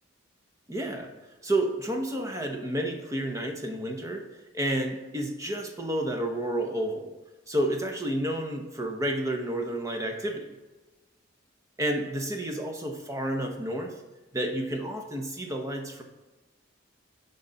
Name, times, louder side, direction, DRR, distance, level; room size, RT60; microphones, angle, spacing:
voice 1, 0.7-1.1 1.4-4.2 4.5-7.1 7.5-10.4 11.8-13.9 14.3-16.0, right 1 dB, 15° right, 4 dB, 0.8 m, -30 dB
11.0 x 3.9 x 4.0 m, 1.1 s
head